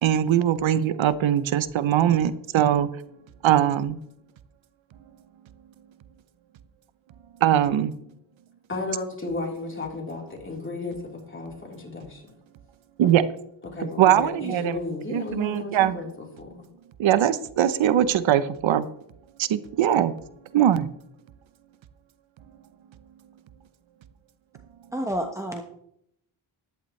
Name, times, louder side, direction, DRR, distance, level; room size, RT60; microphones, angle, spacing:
voice 1, 0.0-2.9 3.4-4.0 7.4-7.9 13.0-13.2 14.0-14.8 15.1-16.0 17.0-18.9 19.4-20.1 20.5-20.9, right 10 dB, 85° right, 14 dB, 0.8 m, -21 dB
voice 2, 8.7-12.2 13.0-13.1 13.7-16.6, left 3 dB, 25° left, -1 dB, 3.8 m, -34 dB
voice 3, 24.9-25.6, right 1 dB, 5° right, 3 dB, 1.1 m, -29 dB
14.0 x 11.0 x 3.2 m, 0.72 s
cardioid pair, 100°, 46 cm